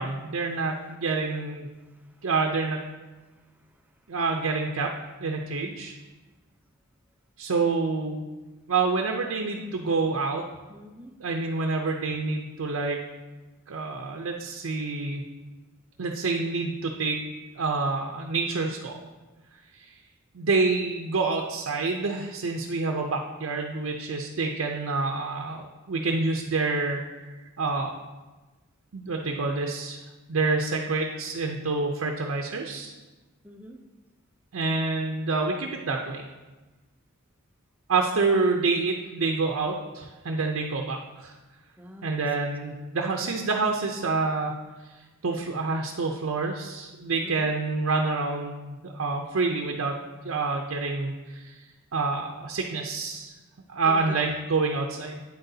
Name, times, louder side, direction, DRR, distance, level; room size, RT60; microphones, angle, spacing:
voice 1, 0.0-1.7 2.2-2.9 4.1-4.9 5.2-5.9 7.4-8.2 8.7-10.5 11.2-13.0 13.7-15.2 16.0-17.2 17.6-19.0 19.7-19.9 20.3-27.3 27.6-27.9 28.9-30.0 30.3-32.9 34.5-36.3 37.9-41.3 42.0-44.6 45.2-50.0 50.2-51.6 51.9-53.3 53.7-55.2, right 3 dB, 85° right, 2 dB, 0.6 m, -27 dB
voice 2, 1.8-2.3 3.4-3.9 10.7-11.1 33.4-33.8 41.8-42.9 47.2-47.5 53.9-54.2, left 1 dB, 10° right, 3 dB, 0.6 m, -47 dB
8.6 x 7.7 x 2.7 m, 1.2 s
head